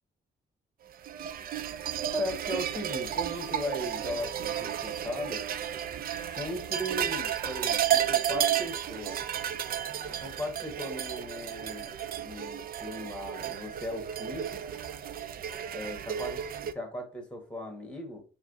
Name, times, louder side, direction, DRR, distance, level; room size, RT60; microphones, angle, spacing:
sound 1, 1.0-16.7, right 9 dB, 50° right, 0.4 m, -32 dB
voice 1, 2.1-5.5 6.2-9.2 10.1-14.6 15.7-18.2, left 1 dB, 5° left, 1.5 m, -38 dB
4.7 x 2.9 x 2.6 m
cardioid pair, 90°, 20 cm